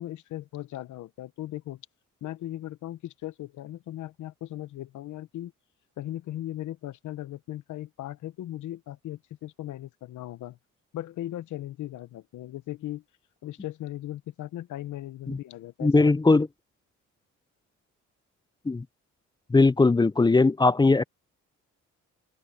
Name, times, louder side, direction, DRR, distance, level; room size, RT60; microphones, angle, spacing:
voice 1, 0.0-1.8 2.2-5.5 6.0-10.6 10.9-13.0 13.4-16.4, left 14 dB, 75° left, 1.0 m, -38 dB
voice 2, 15.8-16.5 18.7-18.8 19.5-21.0, left 3 dB, 15° left, 0.5 m, -20 dB
open air
cardioid pair, 90°, 30 cm